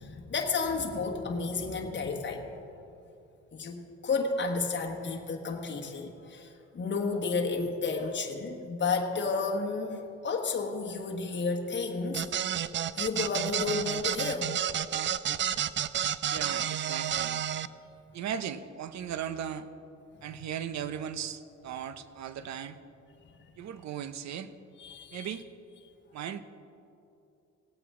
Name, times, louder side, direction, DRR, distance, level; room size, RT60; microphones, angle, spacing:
voice 1, 0.0-2.4 3.5-12.2 13.0-14.5 24.8-25.3, left 4 dB, 40° left, 1 dB, 1.4 m, -32 dB
sound 1, 12.1-17.7, right 10 dB, 40° right, 0.4 m, -31 dB
voice 2, 16.3-17.4 18.1-19.7 20.2-22.8 23.6-24.5 25.1-25.5 26.1-26.4, right 8 dB, 65° right, 12 dB, 0.7 m, -37 dB
18.5 x 8.2 x 3.7 m, 2.7 s
cardioid pair, 90°, 30 cm